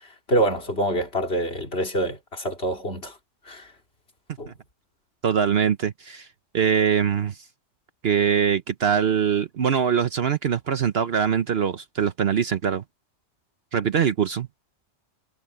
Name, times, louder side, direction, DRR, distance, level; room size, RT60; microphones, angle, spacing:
voice 1, 0.3-3.1 3.5-3.7 4.4-4.5, right 1 dB, 55° left, 3.0 m, -25 dB
voice 2, 5.2-6.3 6.5-7.4 8.0-12.8 13.7-14.5, right 7 dB, 55° right, 1.0 m, -23 dB
omnidirectional pair, 1.3 m